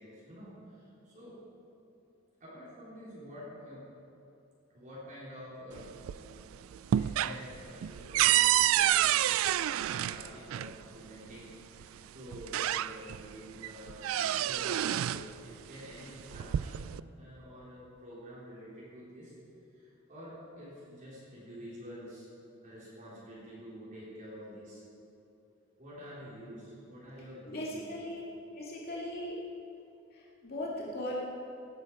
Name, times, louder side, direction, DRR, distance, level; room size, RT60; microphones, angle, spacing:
voice 1, 0.0-1.4 2.4-3.9 4.7-6.5 6.9-19.3 19.7-22.3 22.6-24.8 25.8-27.9, equal, 40° right, -9 dB, 4.0 m, -48 dB
sound 1, 5.7-6.4 6.7-10.7 11.8-11.9 12.3-13.2 13.6-15.3 16.2-17.0, right 12 dB, 75° right, 0.3 m, -28 dB
voice 2, 27.5-28.2 28.6-29.4 30.1-31.2, left 1 dB, 50° left, -5 dB, 2.2 m, -38 dB
18.0 x 10.0 x 4.8 m, 2.7 s
head